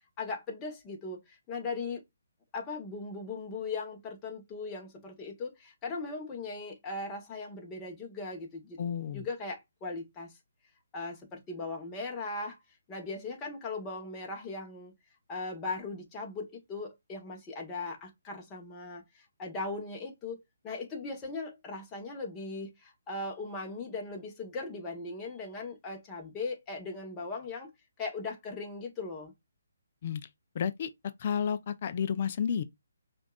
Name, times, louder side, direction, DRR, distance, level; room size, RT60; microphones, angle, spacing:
voice 1, 0.2-2.0 2.5-8.8 9.1-10.3 10.9-12.6 12.9-14.9 15.3-27.7 28.0-29.3, left 3 dB, 15° left, 1.1 m, -38 dB
voice 2, 8.8-9.3 30.0-30.2 30.5-30.9 31.2-32.6, left 7 dB, 45° left, 0.4 m, -31 dB
5.1 x 2.5 x 2.3 m
hypercardioid pair, 155°, 0 cm